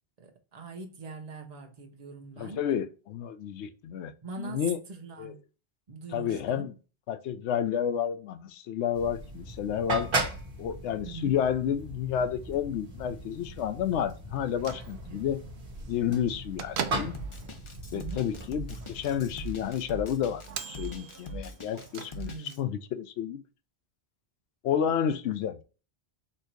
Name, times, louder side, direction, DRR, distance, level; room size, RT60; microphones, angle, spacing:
voice 1, 0.2-2.6 3.6-3.7 4.2-4.6 4.9-5.4 5.9-6.7 11.0-11.4 15.0-15.2 17.9-18.2 22.2-22.6, right 3 dB, 40° right, 0.9 m, -42 dB
voice 2, 2.4-4.8 5.2-5.3 6.1-6.7 7.1-10.1 10.6-15.4 15.9-17.1 17.9-23.4 24.6-25.6, left 9 dB, 85° left, 0.9 m, -30 dB
sound 1, 8.9-19.7, right 2 dB, 55° right, 1.4 m, -38 dB
Bell / Microwave oven, 14.4-22.6, right 8 dB, 75° right, 0.9 m, -43 dB
Drum kit, 17.1-22.6, right 1 dB, 35° left, 0.5 m, -41 dB
4.3 x 2.7 x 4.4 m
omnidirectional pair, 1.1 m